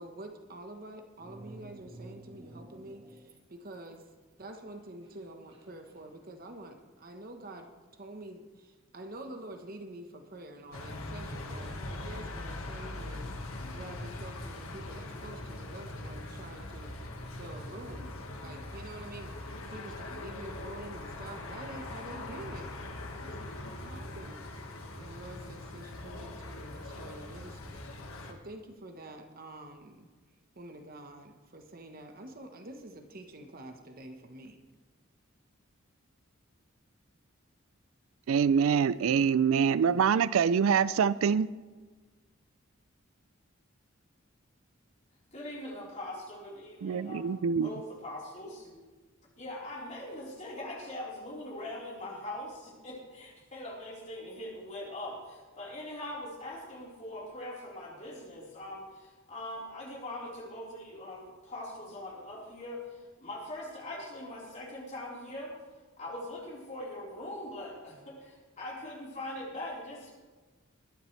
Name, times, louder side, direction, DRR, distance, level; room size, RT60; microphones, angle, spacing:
voice 1, 0.0-4.1 4.4-13.3 13.7-17.0 17.4-22.8 23.2-24.5 24.9-27.9 28.3-30.1 30.5-34.6, right 1 dB, 45° right, 1.1 m, -47 dB
sound 1, 1.2-3.4 3.7-7.1, right 2 dB, 25° right, 1.6 m, -52 dB
sound 2, 10.7-28.3, left 2 dB, 85° left, 1.6 m, -41 dB
voice 2, 38.3-41.5 46.8-47.7, right 7 dB, 75° right, 0.4 m, -25 dB
voice 3, 45.3-48.8 49.4-65.5 66.0-70.1, left 1 dB, 35° left, 4.1 m, -42 dB
21.0 x 11.0 x 3.3 m
head